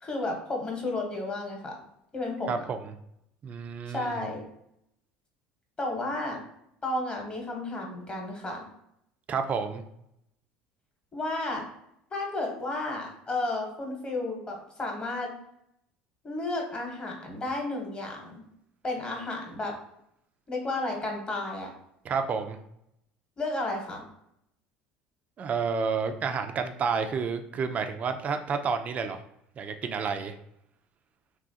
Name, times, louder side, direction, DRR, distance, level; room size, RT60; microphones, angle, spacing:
voice 1, 0.0-1.8 2.1-2.6 3.9-4.4 5.8-6.4 6.8-8.7 11.1-11.7 12.1-15.3 16.2-18.4 18.8-19.7 20.5-21.7 23.4-24.0, left 2 dB, 25° left, 0 dB, 0.9 m, -32 dB
voice 2, 2.5-2.9 3.4-4.2 9.3-9.8 22.0-22.6 25.4-29.2 29.6-30.3, right 5 dB, 35° right, 7 dB, 0.4 m, -30 dB
3.0 x 2.4 x 2.7 m, 0.77 s
supercardioid pair, 95°, 4 cm